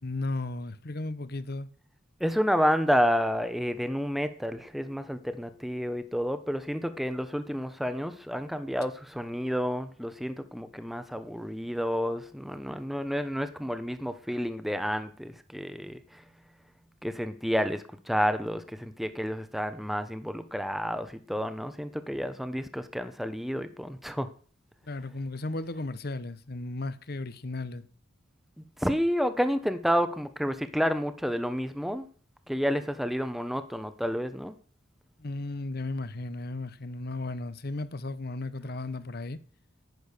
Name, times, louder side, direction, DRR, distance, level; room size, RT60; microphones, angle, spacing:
voice 1, 0.0-1.7 24.8-27.9 35.2-39.4, left 2 dB, 50° left, 0.9 m, -35 dB
voice 2, 2.2-16.2 17.0-24.3 28.6-32.1 32.5-34.5, equal, ahead, 0.9 m, -30 dB
11.0 x 10.0 x 6.6 m
head